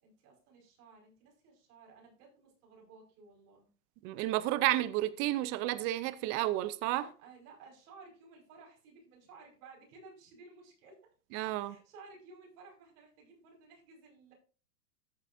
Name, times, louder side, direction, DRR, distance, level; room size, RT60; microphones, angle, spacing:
voice 1, 0.0-3.7 6.9-11.0 11.5-14.3, right 4 dB, 65° right, 5.4 m, -56 dB
voice 2, 4.0-7.0 11.3-11.8, right 15 dB, 30° right, 0.5 m, -31 dB
13.5 x 7.5 x 2.6 m
hypercardioid pair, 125°, 49 cm